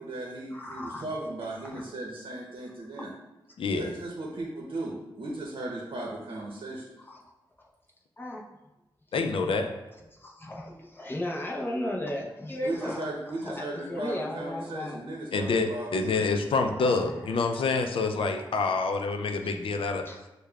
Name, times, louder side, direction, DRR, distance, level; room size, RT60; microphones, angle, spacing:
voice 1, 0.0-3.1 3.7-6.8 12.6-16.1, right 2 dB, 75° right, -2 dB, 0.7 m, -36 dB
voice 2, 0.5-1.0 1.7-1.8 7.1-7.2 8.2-8.4 10.2-13.0 13.4-15.0 16.1-16.2 16.8-17.1 17.5-17.7 18.5-18.8 20.1-20.2, left 1 dB, 25° left, -2 dB, 0.7 m, -35 dB
voice 3, 3.6-3.9 9.1-9.7 15.3-20.1, left 4 dB, 80° left, 5 dB, 0.4 m, -27 dB
6.4 x 2.2 x 2.3 m, 1.0 s
cardioid pair, 60°, 9 cm